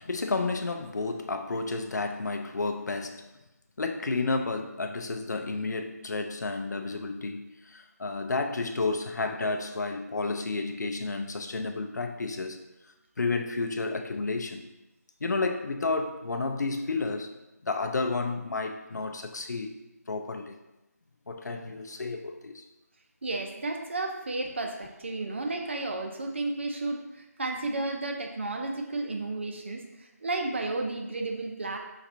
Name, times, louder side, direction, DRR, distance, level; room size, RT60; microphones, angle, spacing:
voice 1, 0.0-3.3 3.8-12.6 13.2-14.6 15.2-17.3 17.6-19.8 20.1-20.6 21.3-22.6, left 3 dB, 80° left, 5 dB, 0.5 m, -31 dB
voice 2, 23.2-31.8, right 2 dB, 45° right, 2 dB, 0.6 m, -32 dB
4.1 x 2.5 x 4.3 m, 0.98 s
figure-of-eight pair, 175°, 9 cm